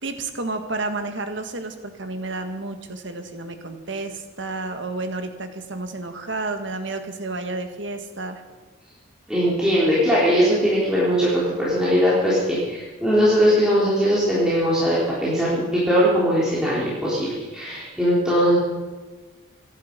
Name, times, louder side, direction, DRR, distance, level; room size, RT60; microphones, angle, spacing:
voice 1, 0.0-8.4, right 2 dB, 65° right, 6 dB, 1.8 m, -31 dB
voice 2, 9.3-18.6, equal, 5° right, -9 dB, 3.6 m, -20 dB
25.0 x 11.0 x 5.3 m, 1.3 s
head